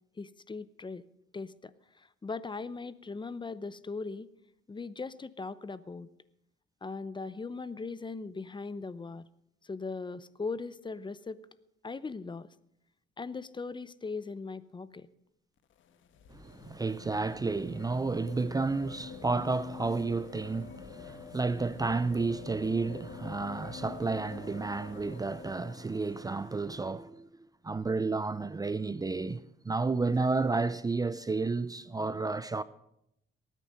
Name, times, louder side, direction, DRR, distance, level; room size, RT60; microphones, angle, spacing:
voice 1, 0.2-1.0 1.3-4.3 4.7-6.1 6.8-9.2 9.6-11.4 11.8-12.5 13.2-15.1, left 4 dB, 25° left, 0.7 m, -39 dB
sound 1, 15.6-26.6 27.8-27.9, left 6 dB, 75° left, 1.3 m, -47 dB
voice 2, 16.3-27.3 27.6-32.6, right 3 dB, 20° right, 0.5 m, -31 dB
19.5 x 9.2 x 6.4 m
cardioid pair, 90°, 20 cm